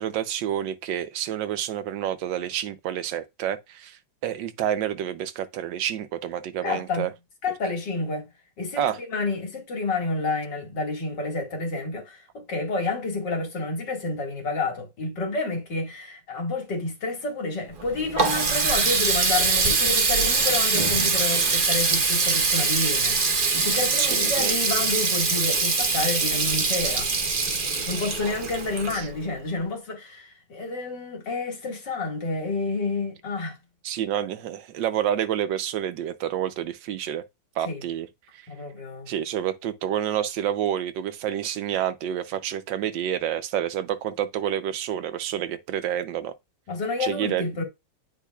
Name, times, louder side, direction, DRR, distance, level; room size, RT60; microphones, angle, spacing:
voice 1, 0.0-7.1 8.8-9.0 24.0-24.5 28.9-29.1 33.8-37.2 37.6-38.1 38.3-38.5 39.1-46.3 47.0-47.4, right 10 dB, 75° right, 1.4 m, -28 dB
voice 2, 6.6-7.1 7.4-8.3 8.6-27.1 27.9-33.6 37.6-37.8 38.5-39.1 46.7-47.6, left 3 dB, 65° left, 2.6 m, -29 dB
Water tap faucet, 17.7-29.4, right 4 dB, 35° right, 0.9 m, -23 dB
10.0 x 4.4 x 2.3 m
omnidirectional pair, 2.1 m